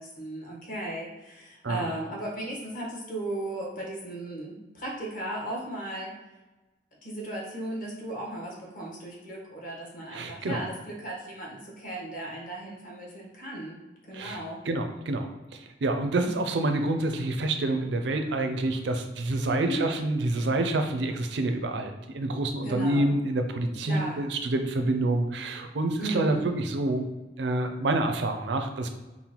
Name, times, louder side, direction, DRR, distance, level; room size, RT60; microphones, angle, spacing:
voice 1, 0.0-6.1 7.0-13.8 14.1-14.6 19.5-19.9 22.6-23.1 23.9-24.2 26.0-26.4, right 1 dB, 50° left, -3 dB, 1.2 m, -36 dB
voice 2, 10.1-10.6 14.1-14.4 14.7-27.1 27.4-28.9, right 2 dB, 70° right, 6 dB, 0.5 m, -27 dB
5.3 x 2.2 x 2.9 m, 1.1 s
head